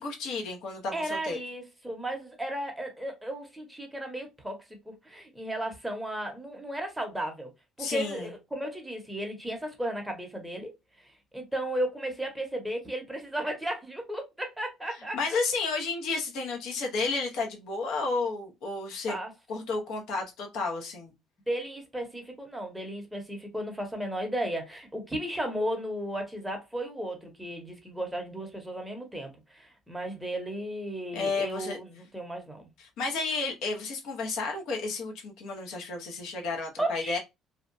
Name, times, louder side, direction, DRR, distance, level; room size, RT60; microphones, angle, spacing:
voice 1, 0.0-1.4 7.8-8.3 15.1-19.2 19.5-21.1 31.1-31.8 32.8-37.2, left 3 dB, 75° left, 0.9 m, -32 dB
voice 2, 0.9-4.6 4.9-7.5 7.8-10.7 11.3-15.4 19.1-19.3 21.5-32.7 36.8-37.2, right 1 dB, 5° right, 0.8 m, -34 dB
2.7 x 2.2 x 2.5 m
cardioid pair, 125°, 0 cm